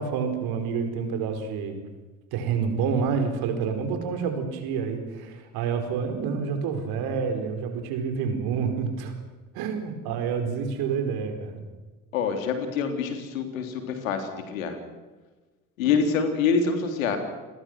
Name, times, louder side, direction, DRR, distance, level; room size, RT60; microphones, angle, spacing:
voice 1, 0.0-1.8 2.3-9.1 9.5-11.7, right 6 dB, 60° right, 6 dB, 4.8 m, -28 dB
voice 2, 12.1-14.8 15.8-17.2, left 5 dB, 75° left, 6 dB, 3.5 m, -26 dB
29.5 x 21.0 x 6.3 m, 1.2 s
figure-of-eight pair, 60°, 41 cm